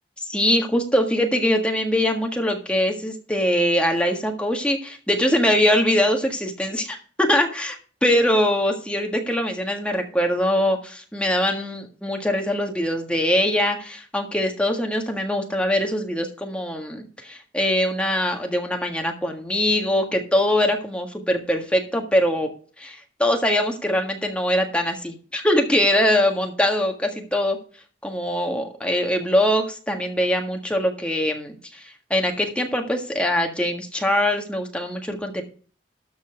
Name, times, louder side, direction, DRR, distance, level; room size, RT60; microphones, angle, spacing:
voice 1, 0.3-7.8 8.0-22.5 22.8-27.6 28.0-35.4, left 1 dB, 5° left, 3 dB, 1.6 m, -22 dB
13.0 x 4.4 x 6.7 m, 0.41 s
head